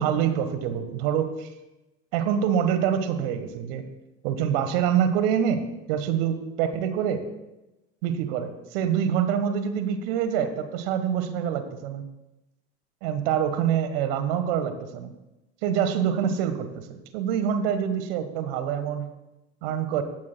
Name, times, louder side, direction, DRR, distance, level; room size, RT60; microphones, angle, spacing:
voice 1, 0.0-1.5 2.1-3.8 4.2-5.6 5.9-7.2 8.0-12.1 13.0-15.1 15.6-16.8 17.1-19.1 19.6-20.0, right 8 dB, 60° right, 9 dB, 1.4 m, -25 dB
16.5 x 13.5 x 2.3 m, 0.99 s
figure-of-eight pair, 70°, 33 cm